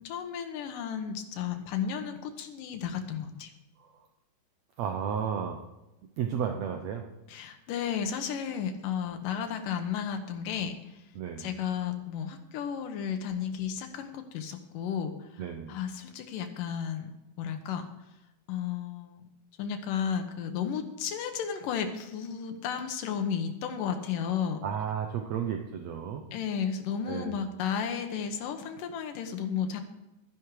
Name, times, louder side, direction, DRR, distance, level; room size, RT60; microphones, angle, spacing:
voice 1, 0.0-3.5 7.3-10.8 11.4-15.4 15.7-17.1 17.4-17.9 18.5-19.2 19.6-24.6 26.3-29.8, left 7 dB, 85° left, 6 dB, 2.8 m, -33 dB
voice 2, 4.8-5.6 6.2-7.0 11.2-11.5 15.4-15.8 24.6-26.2 27.1-27.4, right 8 dB, 70° right, 4 dB, 1.9 m, -33 dB
12.5 x 11.0 x 4.8 m, 0.96 s
omnidirectional pair, 3.7 m